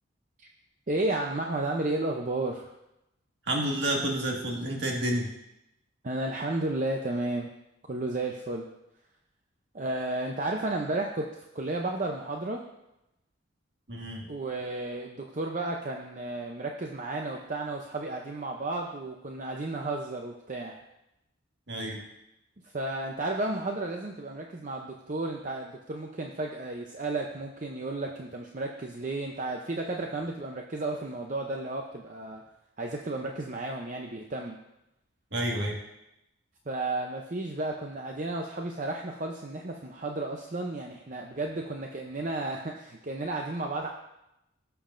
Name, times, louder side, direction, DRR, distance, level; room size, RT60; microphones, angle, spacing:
voice 1, 0.9-2.7 6.0-7.5 7.9-8.7 9.7-11.3 11.5-12.6 14.3-20.8 22.7-32.4 32.8-34.6 36.7-43.9, right 2 dB, 40° right, 1 dB, 0.6 m, -33 dB
voice 2, 3.5-5.3 13.9-14.3 21.7-22.0 35.3-35.8, right 1 dB, 55° right, -1 dB, 1.9 m, -29 dB
16.5 x 6.9 x 2.6 m, 0.88 s
head